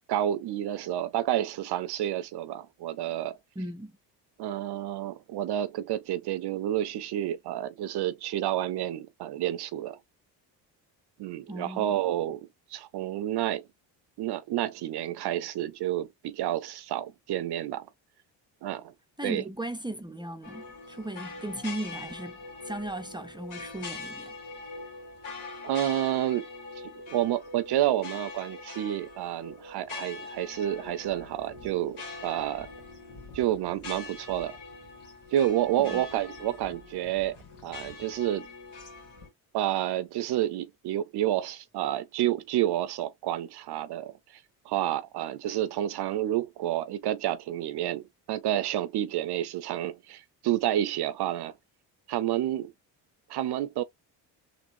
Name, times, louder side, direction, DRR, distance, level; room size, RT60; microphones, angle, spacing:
voice 1, 0.1-3.4 4.4-10.0 11.2-12.4 12.7-13.7 14.2-17.9 18.6-18.9 19.2-19.4 25.6-26.5 26.8-26.9 27.1-32.7 33.3-34.6 35.3-38.5 39.5-51.5 52.1-52.7 53.3-53.8, right 12 dB, 55° right, 0.6 m, -29 dB
voice 2, 3.6-4.0 11.5-11.9 19.2-22.4 22.6-24.4 35.8-36.0, right 1 dB, 10° right, 0.5 m, -37 dB
sound 1, 20.4-39.3, left 3 dB, 80° left, 1.7 m, -43 dB
3.8 x 2.4 x 2.6 m
hypercardioid pair, 60°, 48 cm